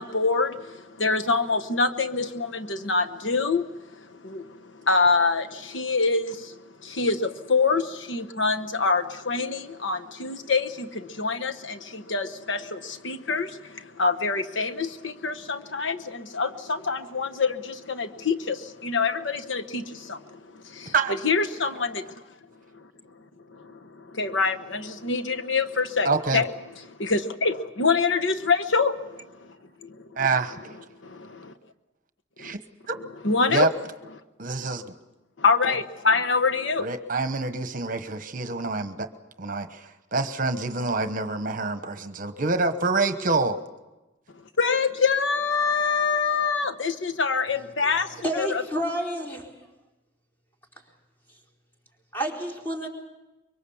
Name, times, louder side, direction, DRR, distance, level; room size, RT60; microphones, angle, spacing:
voice 1, 0.0-20.9 21.2-22.1 23.5-26.5 27.0-29.2 29.8-30.0 31.0-31.5 32.4-32.5 33.2-33.7 35.4-36.9 44.6-48.6, left 4 dB, 75° left, 1.1 m, -26 dB
voice 2, 26.0-26.4 30.2-30.6 32.4-32.6 32.9-33.0 33.5-33.7 34.4-34.9 36.8-39.1 39.4-43.6, right 3 dB, 45° right, 1.1 m, -26 dB
voice 3, 48.2-49.7 52.1-52.9, right 1 dB, 10° left, 4.2 m, -30 dB
24.5 x 23.5 x 7.1 m
head